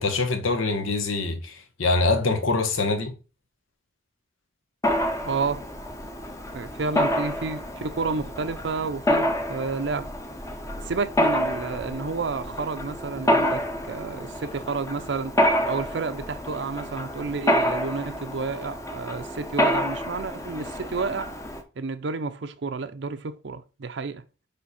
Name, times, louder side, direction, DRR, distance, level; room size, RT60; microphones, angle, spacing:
voice 1, 0.0-3.1, left 3 dB, 85° left, 1.3 m, -24 dB
Mechanisms, 4.8-21.6, equal, 15° left, 0.7 m, -28 dB
voice 2, 5.2-5.7 6.5-10.1 10.8-15.3 15.6-21.3 21.8-24.2, right 4 dB, 60° right, 0.5 m, -30 dB
9.3 x 3.4 x 4.2 m
head